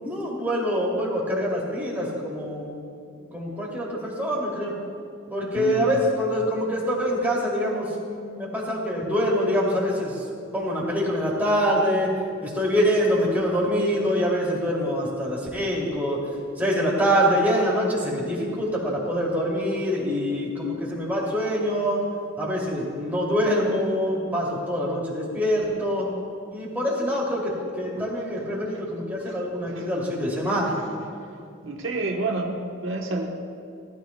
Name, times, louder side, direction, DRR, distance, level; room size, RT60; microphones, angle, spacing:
voice 1, 0.0-2.8 3.3-4.7 5.3-10.1 10.5-12.1 12.4-16.2 16.6-22.0 22.4-26.1 26.5-27.5 27.8-30.7, equal, 10° right, -5 dB, 2.6 m, -25 dB
voice 2, 5.6-6.0 28.4-28.5 29.3-29.4 29.7-29.9 31.6-33.3, right 2 dB, 75° right, 1 dB, 1.1 m, -29 dB
19.5 x 13.0 x 2.2 m, 2.5 s
head